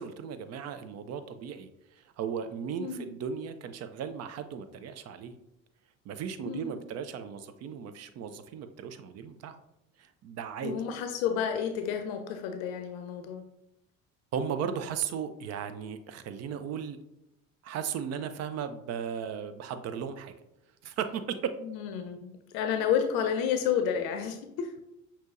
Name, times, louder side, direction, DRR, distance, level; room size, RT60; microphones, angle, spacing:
voice 1, 0.0-5.3 6.1-9.6 10.0-10.7 14.3-17.0 17.6-20.3 20.8-21.4, right 7 dB, 40° right, 10 dB, 0.4 m, -36 dB
voice 2, 2.8-3.1 6.4-6.8 10.6-13.4 21.6-24.7, left 8 dB, 60° left, 6 dB, 0.6 m, -31 dB
6.1 x 2.8 x 2.5 m, 0.86 s
hypercardioid pair, 60°, 42 cm